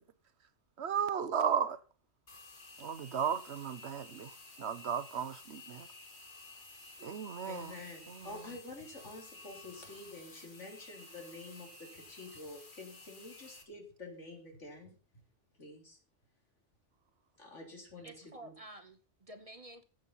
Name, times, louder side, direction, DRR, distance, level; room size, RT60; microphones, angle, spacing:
voice 1, 0.8-1.8 2.8-5.9 7.0-7.7 8.1-8.4, right 7 dB, 65° right, 1.1 m, -35 dB
sound 1, 2.3-13.6, left 3 dB, 45° left, 2.0 m, -53 dB
voice 2, 7.5-15.0 15.5-16.0 17.4-18.5, left 2 dB, 75° left, 3.8 m, -48 dB
voice 3, 18.0-19.8, right 1 dB, 30° right, 1.0 m, -51 dB
16.0 x 7.7 x 5.6 m
omnidirectional pair, 1.2 m